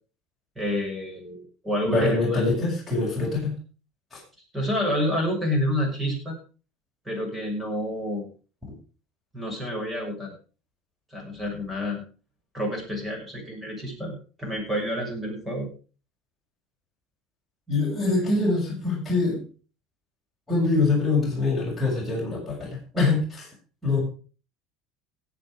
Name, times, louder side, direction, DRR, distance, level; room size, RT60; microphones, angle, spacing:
voice 1, 0.5-2.4 4.5-6.4 7.0-8.2 9.3-10.3 11.1-12.0 12.5-15.7, equal, 10° right, 2 dB, 6.6 m, -29 dB
voice 2, 1.8-3.6 4.1-4.2 17.7-19.5 20.5-23.5 23.8-24.0, left 3 dB, 5° left, -6 dB, 7.1 m, -24 dB
17.5 x 8.2 x 5.0 m, 0.37 s
cardioid pair, 135°, 0 cm